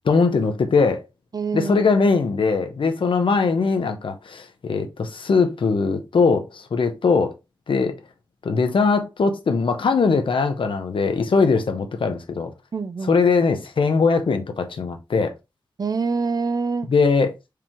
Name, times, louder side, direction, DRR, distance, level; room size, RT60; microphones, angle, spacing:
voice 1, 0.0-1.0 1.5-7.3 7.7-8.0 8.4-12.5 13.1-15.3 16.9-17.3, left 4 dB, 85° left, 0.9 m, -20 dB
voice 2, 1.3-1.9 12.7-13.1 15.8-16.9, right 4 dB, 50° right, 0.4 m, -25 dB
4.7 x 3.6 x 3.0 m
wide cardioid pair, 110°, 9 cm